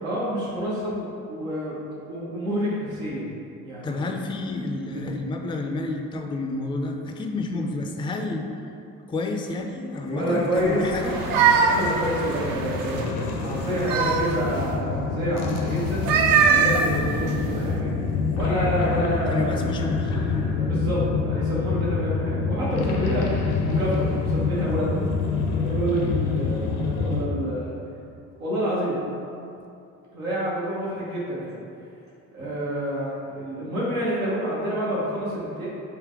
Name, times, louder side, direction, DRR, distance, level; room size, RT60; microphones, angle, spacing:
voice 1, 0.0-1.8 2.1-3.3 3.6-4.0 4.9-5.1 10.1-10.8 11.5-16.1 16.4-17.9 18.3-19.5 20.5-25.1 25.5-27.7 28.4-29.0 30.1-31.6 32.3-35.7, equal, 90° right, -7 dB, 0.9 m, -28 dB
voice 2, 3.8-8.5 9.1-11.1 19.3-20.2 32.4-32.5, left 2 dB, 15° left, 4 dB, 0.4 m, -30 dB
sound 1, 10.1-27.3, left 4 dB, 65° left, 0.7 m, -27 dB
sound 2, 11.0-13.1 13.6-14.8 15.9-17.7, right 6 dB, 55° right, 0.5 m, -22 dB
3.8 x 2.7 x 4.8 m, 2.6 s
hypercardioid pair, 45°, 41 cm